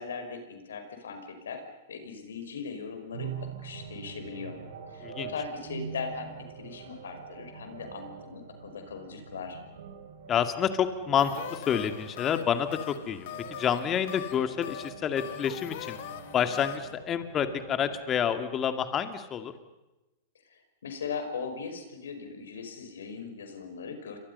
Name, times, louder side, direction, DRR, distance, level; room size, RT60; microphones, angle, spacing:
voice 1, 0.0-1.6 1.9-4.6 4.9-9.6 20.5-24.2, left 5 dB, 75° left, 6 dB, 5.5 m, -39 dB
sound 1, 3.1-18.0, right 7 dB, 70° right, 4.4 m, -45 dB
voice 2, 10.3-13.3 13.6-16.0 16.3-19.5, left 8 dB, 30° left, 9 dB, 2.3 m, -28 dB
sound 2, 11.2-17.0, left 11 dB, 60° left, 2.0 m, -42 dB
29.5 x 25.0 x 5.6 m, 1.0 s
hypercardioid pair, 105°, 0 cm